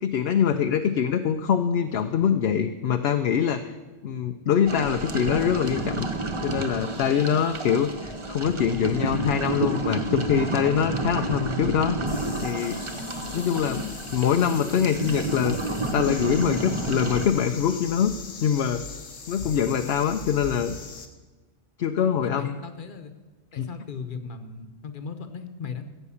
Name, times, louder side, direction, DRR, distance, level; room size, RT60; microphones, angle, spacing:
voice 1, 0.0-3.8 4.0-6.1 6.4-12.0 12.4-12.8 13.3-15.6 15.9-18.1 18.4-18.8 19.3-20.8 21.8-22.5 23.6-23.7, left 8 dB, 60° left, 6 dB, 0.8 m, -24 dB
sound 1, 4.6-17.3, right 2 dB, 25° right, 1.0 m, -30 dB
sound 2, 12.1-21.1, left 5 dB, 85° left, 1.6 m, -40 dB
voice 2, 22.2-23.1 23.5-25.8, left 5 dB, 45° left, 8 dB, 1.2 m, -37 dB
15.5 x 8.1 x 7.1 m, 1.3 s
omnidirectional pair, 1.3 m